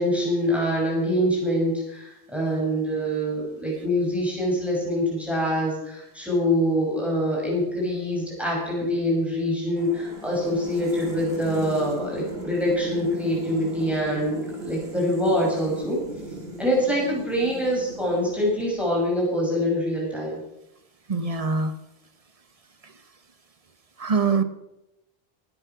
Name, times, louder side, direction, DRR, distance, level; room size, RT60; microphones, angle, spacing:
voice 1, 0.0-16.0 16.6-20.4, equal, ahead, -4 dB, 6.3 m, -25 dB
sound 1, 9.8-19.1, right 2 dB, 75° right, 2.4 m, -37 dB
voice 2, 21.1-21.7 24.0-24.4, right 4 dB, 35° right, 10 dB, 1.2 m, -23 dB
23.5 x 9.8 x 6.0 m, 0.89 s
omnidirectional pair, 1.0 m